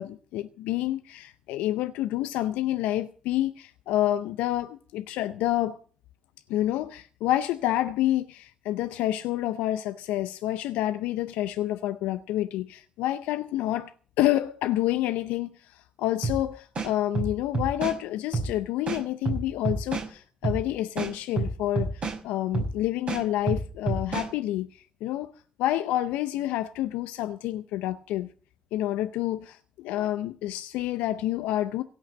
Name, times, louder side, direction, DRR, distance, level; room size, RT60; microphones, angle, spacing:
voice 1, 0.0-5.8 6.5-13.9 14.2-25.3 25.6-28.3 28.7-31.8, left 14 dB, 80° left, 0.5 m, -28 dB
sound 1, 16.2-16.4 16.7-18.0 18.3-18.5 18.9-20.1 20.4-20.6 21.0-22.2 22.5-22.7 23.1-24.3, right 3 dB, 55° right, 5.8 m, -28 dB
17.0 x 6.5 x 8.5 m
hypercardioid pair, 40°, 2 cm